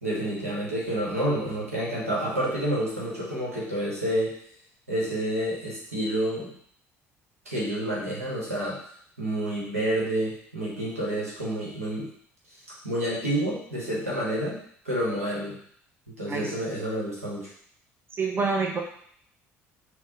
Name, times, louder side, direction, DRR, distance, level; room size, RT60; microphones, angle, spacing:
voice 1, 0.0-4.3 4.9-6.5 7.4-8.8 9.2-12.0 12.8-14.6 14.8-15.6 16.2-17.5, right 1 dB, 85° right, -5 dB, 1.1 m, -29 dB
voice 2, 18.1-18.8, right 4 dB, 30° right, 1 dB, 0.7 m, -27 dB
6.2 x 2.2 x 2.8 m, 0.62 s
figure-of-eight pair, 55°, 8 cm